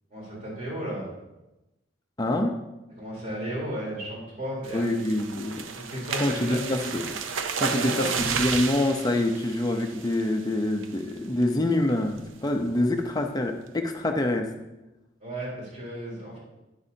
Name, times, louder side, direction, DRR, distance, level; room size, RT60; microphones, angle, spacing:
voice 1, 0.1-1.1 3.0-4.9 5.7-6.6 7.6-8.1 15.2-16.4, right 1 dB, 35° right, -5 dB, 3.6 m, -34 dB
voice 2, 2.2-2.6 4.7-5.6 6.2-7.2 7.6-14.5, left 1 dB, 20° left, 4 dB, 0.7 m, -26 dB
sound 1, 4.6-10.4 10.8-11.1 11.4-11.5 11.9-12.2, right 6 dB, 85° right, 0.6 m, -32 dB
9.9 x 9.6 x 2.8 m, 0.98 s
head